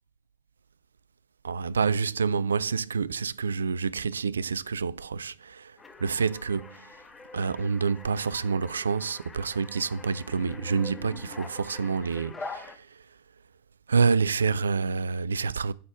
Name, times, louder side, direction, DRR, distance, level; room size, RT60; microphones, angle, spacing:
voice 1, 1.4-6.9 7.3-12.9 13.9-15.7, right 5 dB, 70° right, 0.3 m, -28 dB
sound 1, 5.8-12.8, left 3 dB, 15° left, 1.0 m, -44 dB
8.5 x 4.2 x 5.9 m
figure-of-eight pair, 90°, 0 cm